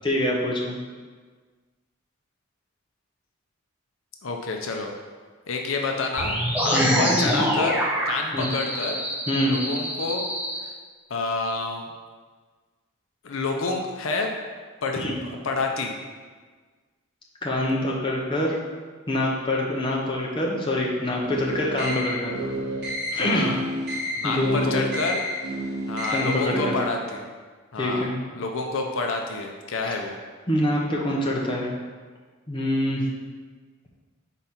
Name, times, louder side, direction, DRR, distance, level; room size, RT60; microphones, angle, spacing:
voice 1, 0.0-0.8 6.7-7.0 8.3-8.5 9.3-9.6 15.0-15.2 17.4-18.6 19.1-22.3 23.1-23.5 24.2-24.8 26.1-26.7 27.8-28.1 30.5-31.7 32.5-33.0, left 1 dB, 25° left, -3 dB, 0.8 m, -25 dB
voice 2, 4.2-4.9 5.5-9.0 9.5-10.3 10.6-10.7 11.1-11.9 13.2-14.4 14.8-15.9 23.1-23.7 24.2-25.2 25.9-27.2 27.7-30.2, left 3 dB, 70° left, 2 dB, 0.6 m, -29 dB
sound 1, 6.2-10.6, equal, 5° right, 0.6 m, -25 dB
sound 2, 21.2-26.8, equal, 50° right, 1.4 m, -30 dB
4.5 x 4.1 x 5.7 m, 1.5 s
head